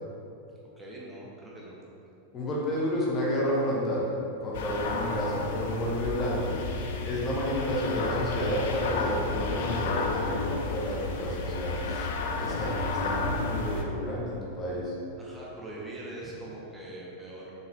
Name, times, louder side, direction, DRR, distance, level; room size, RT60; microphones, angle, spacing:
voice 1, 0.8-1.8 15.2-17.5, right 1 dB, 10° right, -5 dB, 1.5 m, -42 dB
voice 2, 2.3-4.1 4.4-6.6 7.0-14.9, equal, 25° left, -5 dB, 1.2 m, -30 dB
sound 1, 4.5-13.8, left 3 dB, 55° left, 0.6 m, -32 dB
7.5 x 6.3 x 3.0 m, 2.9 s
figure-of-eight pair, 90°, 0 cm